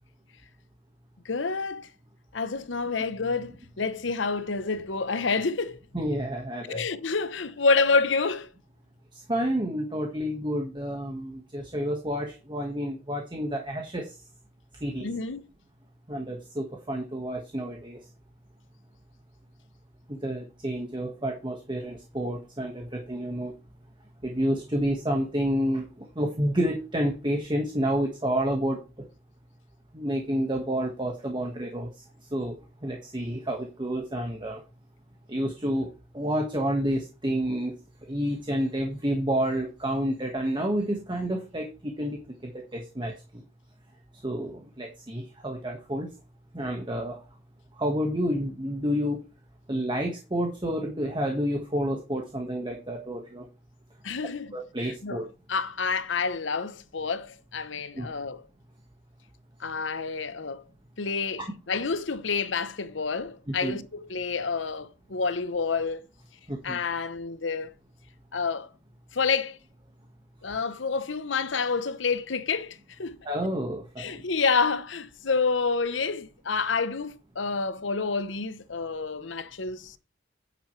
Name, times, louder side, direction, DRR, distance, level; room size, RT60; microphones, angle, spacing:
voice 1, 1.2-1.9 2.3-5.8 6.7-8.5 15.0-15.5 54.0-54.5 54.8-55.2 55.5-58.4 59.6-60.6 61.0-66.1 66.6-67.7 68.3-68.7 69.1-69.6 70.4-73.2 74.0-80.0, left 4 dB, 80° left, 0.9 m, -28 dB
voice 2, 5.9-6.8 9.3-14.1 14.8-15.1 16.1-18.0 20.1-23.5 24.2-28.8 29.9-31.9 32.3-32.5 32.8-34.6 35.3-35.9 36.1-37.7 38.1-43.1 44.2-46.1 46.5-47.2 47.8-49.2 49.7-53.4 54.5-55.2 57.9-58.1 61.4-61.5 63.6-63.8 66.5-66.8 73.2-74.2, equal, 25° right, 1.5 m, -29 dB
9.9 x 7.8 x 3.2 m
head